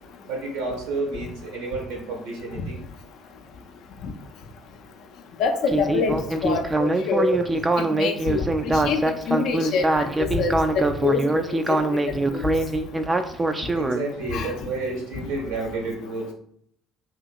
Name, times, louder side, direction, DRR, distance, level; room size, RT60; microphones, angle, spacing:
voice 1, 0.2-2.8 13.7-16.3, right 3 dB, 70° right, 0 dB, 1.0 m, -30 dB
voice 2, 5.4-7.4 7.9-12.4 14.3-14.5, left 5 dB, 60° left, 5 dB, 0.4 m, -26 dB
Speech synthesizer, 5.7-14.0, right 2 dB, 20° right, 0.3 m, -23 dB
2.9 x 2.8 x 2.4 m, 0.68 s
figure-of-eight pair, 55°, 0 cm